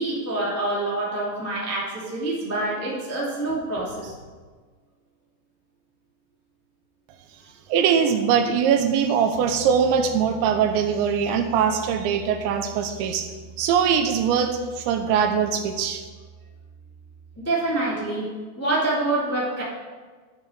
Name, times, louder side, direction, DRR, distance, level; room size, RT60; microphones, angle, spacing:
voice 1, 0.0-4.1 17.4-18.2 18.6-19.6, right 2 dB, 10° left, -6 dB, 0.9 m, -26 dB
voice 2, 7.7-13.3 13.6-16.0, right 7 dB, 80° right, 6 dB, 2.9 m, -22 dB
Piano, 9.3-17.4, right 4 dB, 30° right, 3.8 m, -44 dB
11.5 x 5.9 x 6.6 m, 1.4 s
omnidirectional pair, 5.4 m